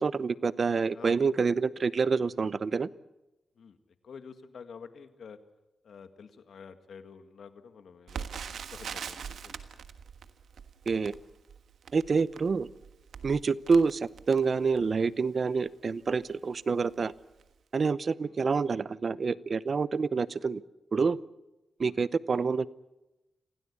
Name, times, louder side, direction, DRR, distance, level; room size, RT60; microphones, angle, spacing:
voice 1, 0.0-2.9 10.9-11.1 11.9-12.7 13.2-17.1 17.7-20.6 20.9-21.2 21.8-22.7, right 5 dB, 55° right, 18 dB, 0.7 m, -27 dB
voice 2, 0.9-1.2 3.6-3.8 4.0-5.4 5.8-9.6 18.3-18.4 21.8-22.0, left 6 dB, 80° left, 9 dB, 1.9 m, -49 dB
Crackle, 8.1-15.0 15.7-15.8 16.1-16.3 16.9-17.1 17.4-17.5, right 7 dB, 85° right, 1.4 m, -43 dB
26.5 x 17.0 x 8.4 m, 1.0 s
cardioid pair, 70°, 0 cm